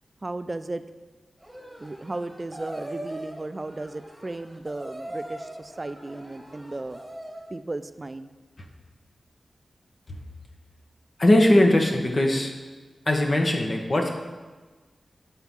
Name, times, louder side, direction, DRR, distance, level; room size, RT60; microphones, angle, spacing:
voice 1, 0.2-0.8 1.8-7.0 7.5-8.3, right 2 dB, 40° right, 11 dB, 0.3 m, -35 dB
sound 1, 1.4-7.6, right 1 dB, 15° right, 1.3 m, -41 dB
voice 2, 11.2-12.5 13.0-14.2, left 1 dB, 50° left, 1 dB, 1.0 m, -20 dB
5.8 x 4.6 x 5.3 m, 1.3 s
cardioid pair, 45°, 0 cm